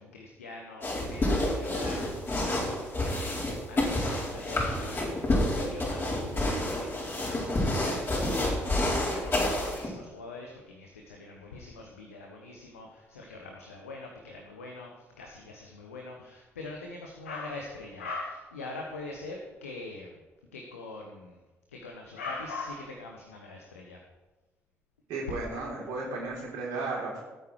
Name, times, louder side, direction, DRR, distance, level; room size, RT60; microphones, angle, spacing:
voice 1, 0.0-20.2 20.5-21.4 21.7-24.0, left 3 dB, 80° left, 1 dB, 1.3 m, -43 dB
sound 1, 0.8-9.9, left 1 dB, 30° left, 5.4 m, -29 dB
voice 2, 25.1-27.2, right 3 dB, 65° right, -5 dB, 4.0 m, -34 dB
17.5 x 9.0 x 4.8 m, 1.2 s
figure-of-eight pair, 40°, 7 cm